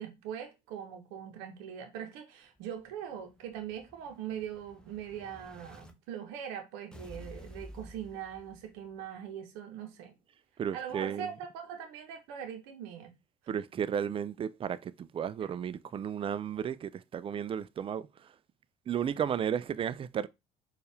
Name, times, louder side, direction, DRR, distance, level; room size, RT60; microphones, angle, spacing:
voice 1, 0.0-10.1 10.7-13.2, right 9 dB, 70° right, 0.7 m, -41 dB
Explosion, 2.6-5.9 6.9-8.9, equal, 5° left, 0.7 m, -52 dB
voice 2, 10.6-11.3 13.5-18.3 18.9-20.3, right 8 dB, 30° right, 0.3 m, -34 dB
4.3 x 2.4 x 3.3 m
hypercardioid pair, 65°, 20 cm